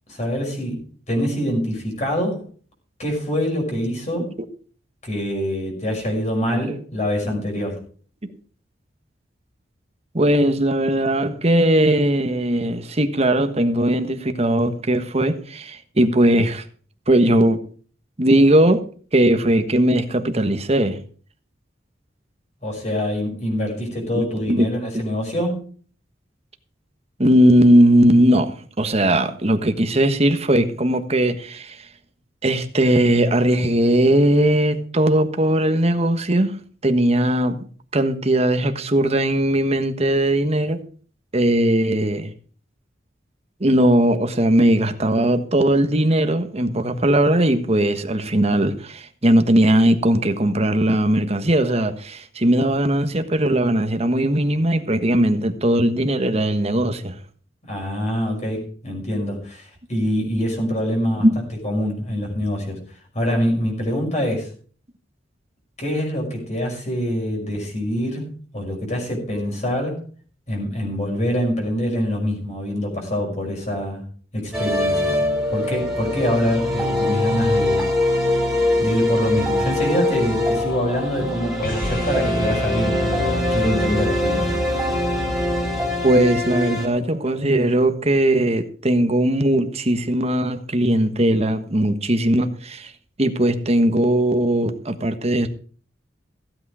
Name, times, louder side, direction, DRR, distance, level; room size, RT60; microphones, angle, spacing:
voice 1, 0.1-2.4 3.0-4.3 5.0-7.8 22.6-25.6 57.7-61.3 61.6-62.8 63.1-64.5 65.8-70.0 70.5-74.0 74.3-75.2 75.5-77.9 78.8-84.5, equal, 40° left, 5.7 m, -25 dB
voice 2, 10.1-16.6 17.1-17.6 18.2-18.8 19.1-21.0 24.1-24.7 27.2-31.8 32.4-36.6 36.8-37.6 37.9-40.8 41.3-42.3 43.6-57.2 61.2-61.3 86.0-92.9 93.2-95.5, right 1 dB, 35° right, 1.4 m, -19 dB
sound 1, 74.5-86.9, left 1 dB, 5° right, 3.3 m, -23 dB
sound 2, 81.6-87.7, equal, 55° left, 5.0 m, -31 dB
15.5 x 8.7 x 4.9 m
head